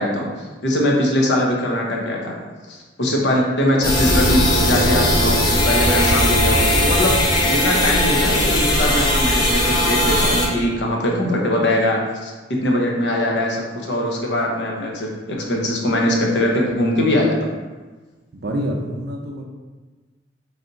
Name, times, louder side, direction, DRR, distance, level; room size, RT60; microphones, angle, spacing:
voice 1, 0.0-2.3 2.7-7.1 7.4-17.4, left 1 dB, 70° left, -1 dB, 0.7 m, -21 dB
sound 1, 3.8-10.5, left 1 dB, 20° left, 0.6 m, -18 dB
voice 2, 18.3-19.5, equal, 60° right, 2 dB, 0.5 m, -26 dB
3.3 x 2.7 x 3.8 m, 1.3 s
head